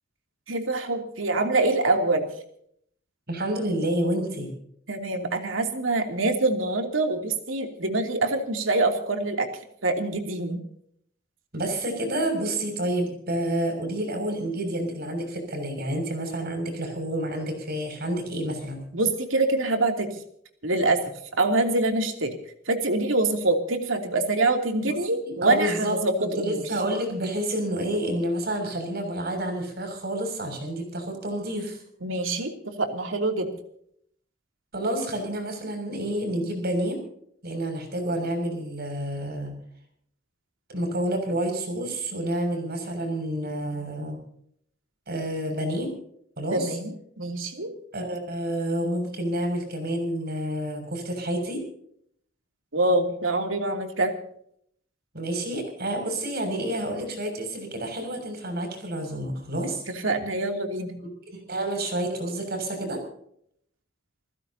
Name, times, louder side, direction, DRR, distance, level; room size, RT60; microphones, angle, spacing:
voice 1, 0.5-2.3 4.9-9.5 9.8-10.6 18.9-20.1 20.6-21.0 21.4-22.3 22.7-26.6 32.0-33.5 46.5-46.9 47.2-47.7 52.7-54.1 59.9-61.0, right 2 dB, 80° right, 4 dB, 2.9 m, -25 dB
voice 2, 3.3-4.5 11.5-18.8 24.8-25.0 25.2-31.8 34.7-37.0 37.4-39.5 40.7-44.2 45.1-45.9 46.4-46.8 47.9-51.6 55.1-59.8 61.0-61.1 61.5-63.0, right 1 dB, 55° right, 5 dB, 6.6 m, -29 dB
29.0 x 15.5 x 2.9 m, 0.67 s
head